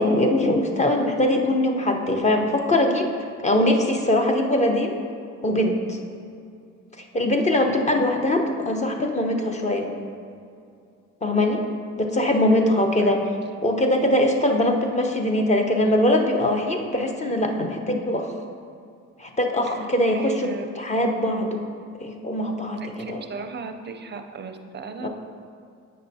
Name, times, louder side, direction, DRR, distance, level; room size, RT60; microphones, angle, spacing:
voice 1, 0.0-3.1 3.4-5.0 5.4-6.0 7.0-9.9 11.2-11.6 12.0-13.2 13.6-18.3 19.2-21.7 22.0-23.2 25.0-25.1, left 1 dB, 25° left, 3 dB, 0.7 m, -22 dB
voice 2, 13.0-13.3 19.6-20.7 22.8-25.1, right 4 dB, 35° right, 7 dB, 0.5 m, -37 dB
8.4 x 5.5 x 2.7 m, 2.4 s
cardioid pair, 90°, 30 cm